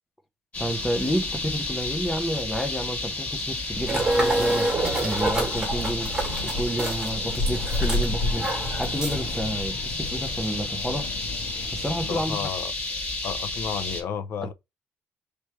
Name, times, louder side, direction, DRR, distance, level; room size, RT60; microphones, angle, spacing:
sound 1, 0.5-14.0, left 2 dB, 30° left, 2.0 m, -31 dB
voice 1, 0.6-4.7 5.0-6.1 6.4-8.5 8.8-11.1 11.7-12.4 14.4-14.5, equal, ahead, 0.6 m, -30 dB
sound 2, 3.7-12.2, left 2 dB, 80° left, 1.2 m, -33 dB
sound 3, 3.9-9.4, right 2 dB, 20° right, 1.7 m, -28 dB
voice 2, 12.1-12.7 13.2-14.5, left 7 dB, 60° left, 0.6 m, -32 dB
3.3 x 3.1 x 4.5 m
cardioid pair, 150°, 5 cm